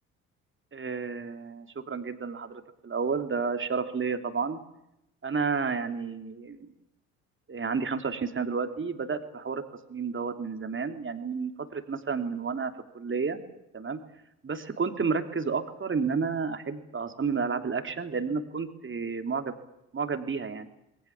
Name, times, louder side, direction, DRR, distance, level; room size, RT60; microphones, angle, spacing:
voice 1, 0.7-4.6 5.2-6.7 7.5-9.6 9.9-13.4 13.7-14.0 14.4-19.5 19.9-20.7, right 5 dB, 30° right, 7 dB, 3.2 m, -31 dB
29.0 x 21.0 x 7.4 m, 0.83 s
hypercardioid pair, 55°, 43 cm